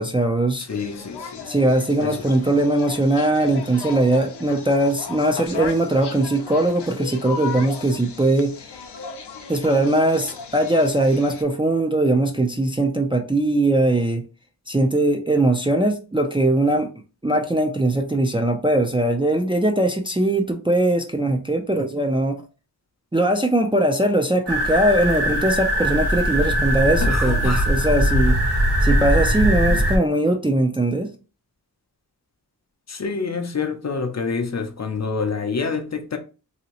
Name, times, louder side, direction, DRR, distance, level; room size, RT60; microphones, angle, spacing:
voice 1, 0.0-0.7 1.5-8.5 9.5-14.2 14.7-16.9 17.2-22.4 23.1-28.4 28.8-31.1, right 1 dB, 15° right, 0.4 m, -20 dB
voice 2, 0.6-1.5 2.0-2.3 27.0-27.7 32.9-36.2, left 5 dB, 40° left, 0.6 m, -27 dB
sound 1, 0.7-11.4, left 5 dB, 85° left, 0.6 m, -36 dB
sound 2, 24.5-30.0, equal, 90° right, 1.3 m, -20 dB
2.9 x 2.8 x 2.9 m
wide cardioid pair, 70°, 40 cm